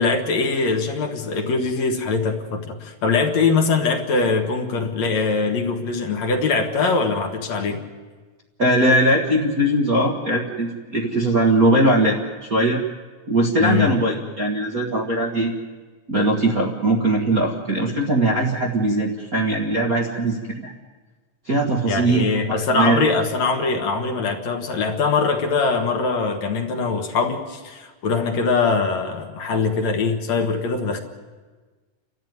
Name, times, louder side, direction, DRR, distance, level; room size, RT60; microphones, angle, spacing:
voice 1, 0.0-7.8 13.6-13.9 21.8-31.0, left 4 dB, 60° left, 4 dB, 2.7 m, -22 dB
voice 2, 8.6-12.8 13.3-15.5 16.1-20.7 21.5-23.0, right 1 dB, 40° right, -2 dB, 1.4 m, -20 dB
30.0 x 13.0 x 9.5 m, 1.4 s
omnidirectional pair, 3.8 m